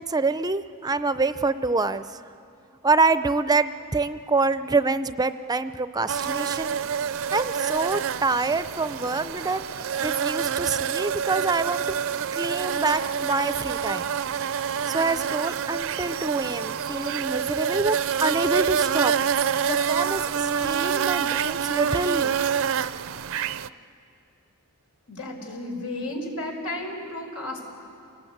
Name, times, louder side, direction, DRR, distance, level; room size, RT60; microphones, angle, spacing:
voice 1, 0.0-2.2 2.8-6.8 7.3-9.6 10.0-11.9 12.3-14.1 14.9-19.1 19.6-22.4, right 3 dB, 20° right, 12 dB, 0.5 m, -26 dB
sound 1, 6.1-23.7, right 7 dB, 65° right, 0.5 m, -27 dB
voice 2, 25.1-27.6, left 1 dB, 90° left, 2 dB, 4.8 m, -33 dB
28.5 x 19.0 x 8.7 m, 2.5 s
head